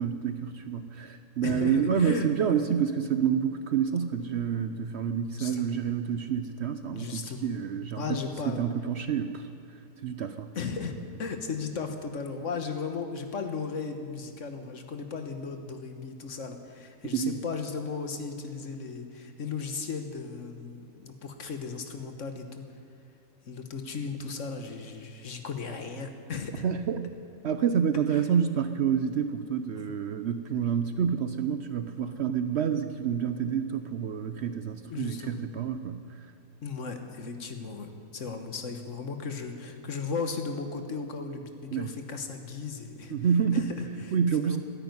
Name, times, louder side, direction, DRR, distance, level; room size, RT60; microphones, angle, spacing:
voice 1, 0.0-8.0 8.4-9.5 10.0-10.5 17.1-17.4 26.6-27.1 27.4-36.0 41.7-41.9 43.1-43.7 44.1-44.6, right 7 dB, 60° right, 9 dB, 0.8 m, -28 dB
voice 2, 1.4-2.6 5.4-5.8 6.9-7.6 7.9-8.6 10.5-10.9 11.2-22.7 23.4-26.6 28.1-28.2 29.8-29.9 34.9-35.4 36.6-43.1 43.5-44.6, left 5 dB, 60° left, 6 dB, 1.5 m, -36 dB
13.5 x 10.0 x 9.4 m, 2.6 s
omnidirectional pair, 1.5 m